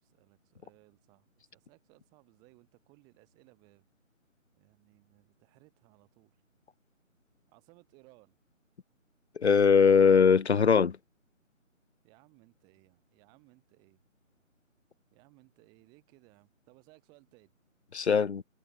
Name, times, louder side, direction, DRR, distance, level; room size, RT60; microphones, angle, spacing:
voice 1, 0.0-3.8 4.6-6.4 7.5-8.4 12.0-14.0 15.1-17.6, right 26 dB, 10° right, 3.5 m, -62 dB
voice 2, 9.4-11.0 17.9-18.4, left 6 dB, 55° left, 0.7 m, -21 dB
figure-of-eight pair, 165°, 40 cm